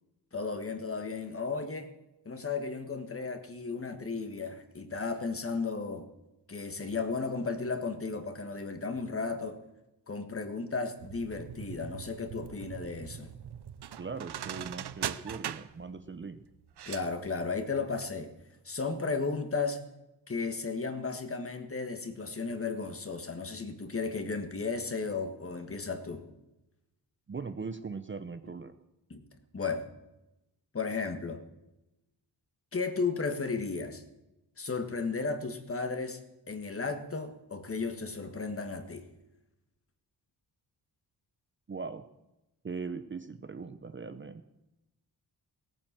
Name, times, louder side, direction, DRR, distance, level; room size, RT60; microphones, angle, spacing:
voice 1, 0.3-1.9 2.2-6.1 6.5-9.6 10.1-13.3 16.9-18.3 18.6-19.8 20.3-26.2 29.1-29.2 29.5-29.9 30.7-31.4 32.7-34.0 34.6-36.2 36.5-39.0, left 4 dB, 30° left, 7 dB, 1.5 m, -34 dB
sound 1, 11.0-18.1 18.4-18.5, right 10 dB, 65° right, 0.7 m, -41 dB
voice 2, 14.0-16.4 27.3-28.7 41.7-42.1 42.6-44.4, right 4 dB, 30° right, 9 dB, 0.7 m, -40 dB
18.0 x 9.0 x 7.4 m, 0.94 s
wide cardioid pair, 140°, 43 cm